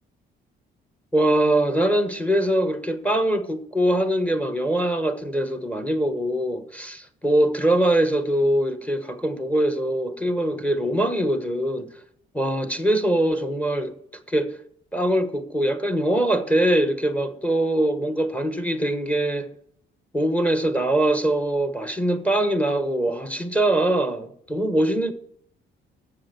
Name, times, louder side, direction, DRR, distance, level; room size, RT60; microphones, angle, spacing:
voice 1, 1.1-11.9 12.3-14.0 14.3-14.5 14.9-19.5 20.1-25.1, right 1 dB, 5° left, 1.1 m, -22 dB
7.5 x 6.7 x 7.4 m
cardioid pair, 90°, 20 cm